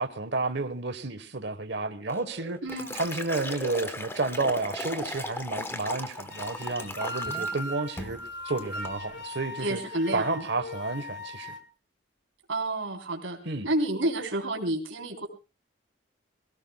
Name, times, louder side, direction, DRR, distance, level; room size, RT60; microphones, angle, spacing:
voice 1, 0.0-2.6 2.9-8.2 8.4-9.8 10.1-11.5 13.4-13.7, right 3 dB, 60° right, 1.2 m, -31 dB
Liquid, 2.1-7.6 8.0-8.2 8.6-9.0, left 1 dB, 15° left, 1.1 m, -37 dB
voice 2, 2.6-3.0 9.6-10.4 12.5-13.4 13.6-15.3, right 1 dB, 90° right, 3.8 m, -29 dB
sound 1, 6.3-11.6, left 1 dB, 65° left, 1.9 m, -38 dB
24.5 x 17.5 x 2.3 m
head